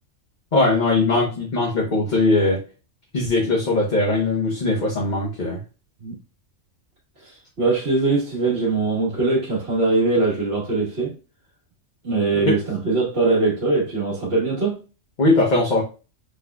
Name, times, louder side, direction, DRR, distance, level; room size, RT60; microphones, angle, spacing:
voice 1, 0.5-2.6 3.1-5.6 12.3-12.6 15.2-15.8, left 2 dB, 40° left, 1.0 m, -20 dB
voice 2, 7.2-11.2 12.0-14.8, right 3 dB, 55° right, 1.7 m, -22 dB
5.7 x 3.2 x 2.2 m
omnidirectional pair, 1.3 m